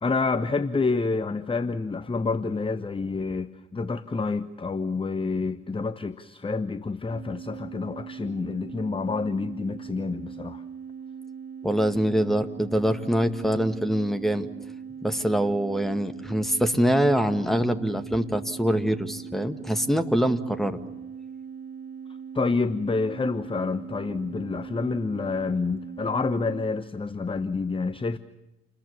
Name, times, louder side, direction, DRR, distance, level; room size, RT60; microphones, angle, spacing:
voice 1, 0.0-10.6 22.3-28.2, left 4 dB, 15° left, 1.0 m, -28 dB
sound 1, 7.1-26.7, right 7 dB, 45° right, 3.8 m, -40 dB
voice 2, 11.6-14.5 15.0-20.8, equal, ahead, 2.0 m, -24 dB
29.0 x 21.5 x 7.2 m
figure-of-eight pair, 45°, 32 cm